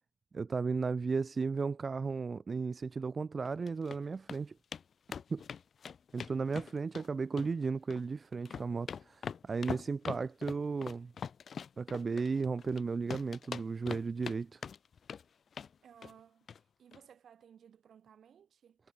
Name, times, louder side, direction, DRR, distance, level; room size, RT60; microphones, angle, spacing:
voice 1, 0.3-4.5 5.3-5.4 6.1-11.1 11.8-14.6, right 4 dB, 40° right, 0.5 m, -35 dB
sound 1, 3.4-4.0 4.3-4.4 4.7-4.8 5.1-7.1 7.4-8.0 8.3-12.8 13.1-14.4 14.6-15.2 15.5-15.7 16.0-16.2 16.5-16.6 16.9-17.0, left 7 dB, 55° left, 0.4 m, -42 dB
voice 2, 15.8-18.8, right 8 dB, 65° right, 6.8 m, -59 dB
supercardioid pair, 65°, 0 cm